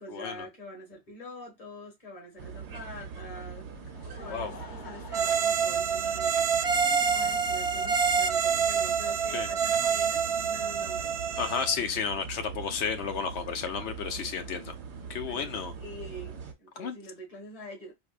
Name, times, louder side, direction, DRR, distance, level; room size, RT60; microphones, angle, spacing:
voice 1, 0.0-3.7 4.0-11.1 13.8-14.3 15.3-17.9, equal, 35° left, 1.6 m, -45 dB
sound 1, 2.4-16.5, right 6 dB, 80° right, 1.0 m, -42 dB
Laughter, 3.4-6.6 7.5-7.6 9.0-9.1, left 4 dB, 50° left, 0.8 m, -48 dB
sound 2, 5.1-11.8, right 6 dB, 55° right, 0.4 m, -27 dB
voice 2, 11.4-14.7 15.1-15.7 16.8-17.0, left 6 dB, 75° left, 1.0 m, -32 dB
4.5 x 2.2 x 2.4 m
omnidirectional pair, 1.1 m